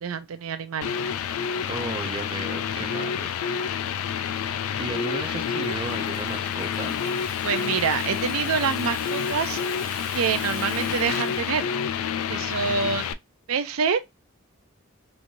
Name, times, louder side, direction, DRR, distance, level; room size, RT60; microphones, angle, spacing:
voice 1, 0.0-0.9 7.4-9.6 10.1-11.7 12.3-13.1 13.5-14.0, right 6 dB, 85° right, 0.5 m, -26 dB
sound 1, 0.8-13.1, left 7 dB, 85° left, 0.3 m, -28 dB
voice 2, 1.7-3.3 4.7-7.0 12.6-13.0, right 3 dB, 25° right, 0.3 m, -35 dB
Rattle (instrument), 4.8-11.7, right 5 dB, 40° right, 0.8 m, -45 dB
3.1 x 2.6 x 2.6 m
head